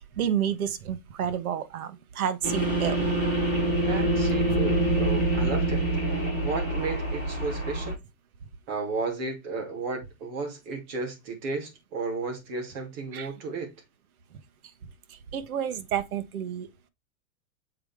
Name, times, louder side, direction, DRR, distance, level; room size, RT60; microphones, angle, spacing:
voice 1, 0.2-3.1 13.1-13.3 15.3-16.7, right 9 dB, 80° right, 1.3 m, -30 dB
sound 1, 2.4-7.9, right 1 dB, 15° right, 4.0 m, -26 dB
voice 2, 3.9-8.0 8.7-13.7, right 4 dB, 35° right, 2.5 m, -33 dB
7.3 x 4.9 x 3.5 m
supercardioid pair, 175°, 42 cm